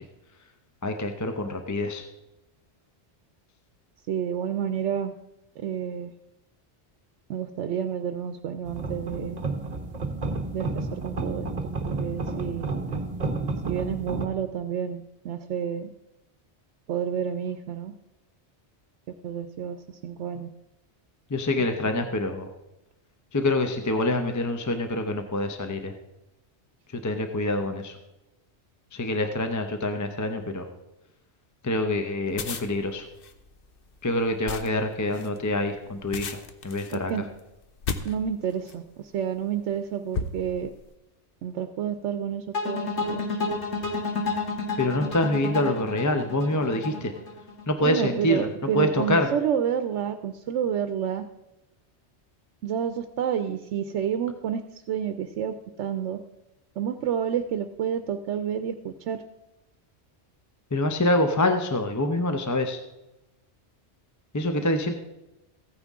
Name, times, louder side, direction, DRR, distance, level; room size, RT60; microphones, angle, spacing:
voice 1, 0.8-2.0 21.3-22.5 23.3-25.9 26.9-28.0 28.9-30.7 31.6-33.1 34.0-36.4 36.6-37.1 44.8-47.1 47.7-48.5 48.7-49.3 60.7-62.8 64.3-64.9, left 1 dB, 20° left, 6 dB, 0.6 m, -26 dB
voice 2, 4.1-5.1 5.6-6.1 7.3-9.4 10.5-11.5 11.8-12.7 13.7-15.9 16.9-17.9 19.2-20.5 21.6-21.7 36.9-37.2 38.0-40.7 41.4-43.3 47.8-51.2 52.6-56.2 56.8-59.2, right 8 dB, 85° right, 9 dB, 0.9 m, -29 dB
sound 1, 8.6-14.3, right 3 dB, 40° right, 0.9 m, -31 dB
sound 2, 32.3-38.9 39.5-39.7 40.1-40.9, left 5 dB, 55° left, 0.9 m, -35 dB
sound 3, 42.5-47.6, left 3 dB, 75° left, 1.7 m, -30 dB
15.0 x 9.4 x 3.6 m, 0.96 s
omnidirectional pair, 1.2 m